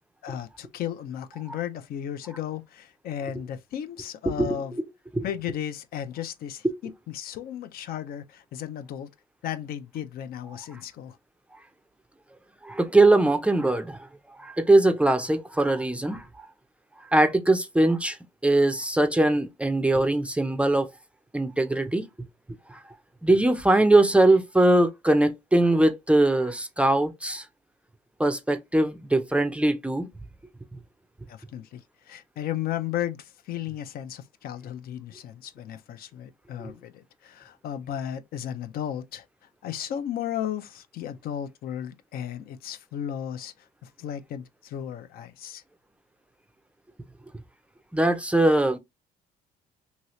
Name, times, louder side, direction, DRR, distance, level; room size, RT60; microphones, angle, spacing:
voice 1, 0.2-4.7 5.2-9.1 9.4-11.2 31.3-39.2 39.6-43.5 43.8-45.6, left 10 dB, 60° left, 0.4 m, -34 dB
voice 2, 4.3-4.8 5.1-5.3 6.6-6.7 12.6-14.0 14.4-16.3 17.1-18.2 18.4-20.9 21.3-22.1 22.7-22.8 23.2-27.4 28.2-30.1 36.6-36.7 47.9-48.8, right 2 dB, 5° right, 0.4 m, -21 dB
2.8 x 2.7 x 3.0 m
cardioid pair, 110°, 17 cm